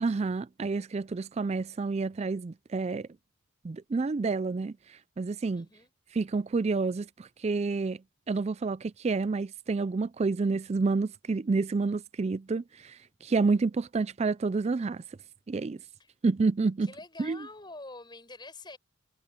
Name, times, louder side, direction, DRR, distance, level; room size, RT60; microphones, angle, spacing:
voice 1, 0.0-3.1 3.6-4.7 5.2-5.7 6.1-8.0 8.3-15.0 15.5-15.8 16.2-16.9 17.2-17.5, right 4 dB, 30° right, 0.3 m, -29 dB
voice 2, 5.5-5.9 16.0-16.1 16.8-18.8, left 2 dB, 20° left, 6.1 m, -46 dB
head